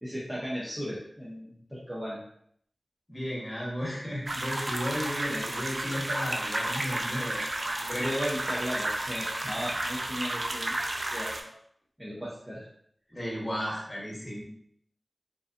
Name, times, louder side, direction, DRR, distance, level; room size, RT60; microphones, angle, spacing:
voice 1, 0.0-2.2 5.3-5.5 8.0-11.5 12.0-12.7, equal, 10° right, -7 dB, 0.6 m, -36 dB
voice 2, 3.1-8.1 13.1-14.4, equal, 20° left, -4 dB, 1.0 m, -34 dB
sound 1, 4.3-11.4, right 1 dB, 55° right, 0.3 m, -32 dB
2.6 x 2.2 x 2.5 m, 0.68 s
wide cardioid pair, 55°, 0 cm